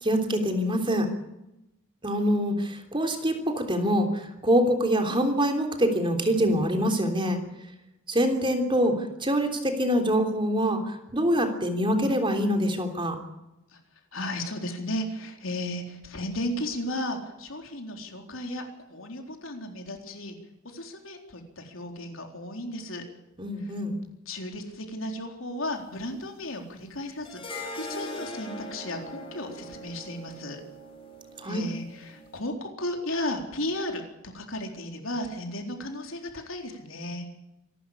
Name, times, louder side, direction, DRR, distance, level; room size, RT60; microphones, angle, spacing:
voice 1, 0.0-1.1 2.0-7.4 8.1-13.2 23.4-24.0 31.4-31.6, equal, 25° right, 4 dB, 3.4 m, -25 dB
voice 2, 14.1-18.6 18.9-20.4 20.6-23.0 23.6-23.7 24.3-27.4 27.7-30.6 31.4-37.3, left 1 dB, 70° left, 3 dB, 4.0 m, -34 dB
sound 1, 27.3-32.4, left 1 dB, 25° left, 5.1 m, -41 dB
26.5 x 12.5 x 8.6 m, 0.91 s
head